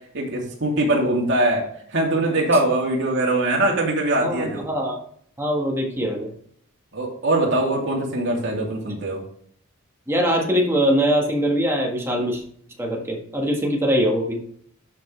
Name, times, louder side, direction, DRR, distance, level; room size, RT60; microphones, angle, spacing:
voice 1, 0.1-4.7 6.9-9.2, right 1 dB, 55° right, -2 dB, 2.8 m, -22 dB
voice 2, 4.2-5.0 5.4-6.3 10.1-12.4 12.8-14.4, equal, 10° right, 0 dB, 1.7 m, -22 dB
11.5 x 5.5 x 3.3 m, 0.63 s
head